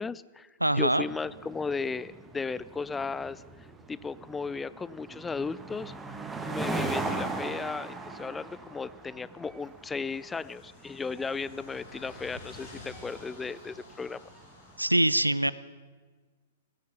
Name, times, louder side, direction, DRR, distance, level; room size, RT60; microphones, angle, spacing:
voice 1, 0.0-3.4 3.9-14.3, left 4 dB, 10° left, 19 dB, 0.4 m, -35 dB
voice 2, 0.6-1.0 14.8-15.5, right 1 dB, 85° right, 18 dB, 0.5 m, -23 dB
sound 1, 1.0-14.5, right 3 dB, 10° right, 1.4 m, -39 dB
sound 2, 3.7-4.1 4.4-4.5 4.8-5.1 5.5-6.6 6.9-14.9, left 2 dB, 40° left, 6.3 m, -52 dB
15.5 x 15.0 x 5.9 m, 1.4 s
figure-of-eight pair, 105°, 0 cm